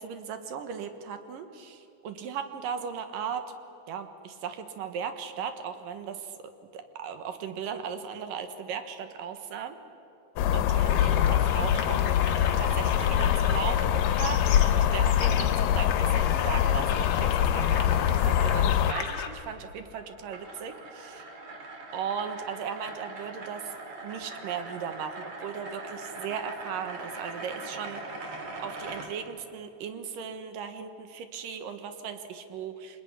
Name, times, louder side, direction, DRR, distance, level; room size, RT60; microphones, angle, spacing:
voice 1, 0.0-3.4 3.9-6.4 6.7-9.8 10.5-21.3 21.9-23.8 24.0-28.4 28.6-33.0, right 7 dB, 85° right, 8 dB, 3.1 m, -37 dB
sound 1, 10.4-18.9, left 10 dB, 85° left, 2.4 m, -24 dB
sound 2, 10.9-19.3, left 6 dB, 50° left, 2.3 m, -36 dB
sound 3, 19.6-29.1, right 2 dB, 55° right, 3.7 m, -41 dB
25.5 x 20.5 x 9.8 m, 2.8 s
omnidirectional pair, 3.8 m